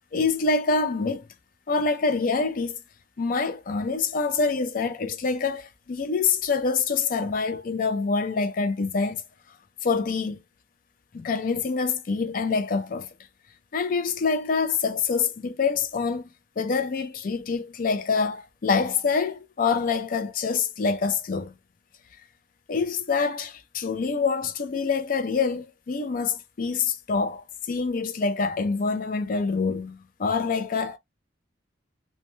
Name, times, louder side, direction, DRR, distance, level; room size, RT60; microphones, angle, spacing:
voice 1, 0.1-1.3 1.7-2.8 3.2-9.2 9.8-10.4 11.1-13.1 13.7-16.3 16.6-21.5 22.7-31.0, left 4 dB, 45° left, 0.4 m, -26 dB
2.2 x 2.2 x 2.9 m
head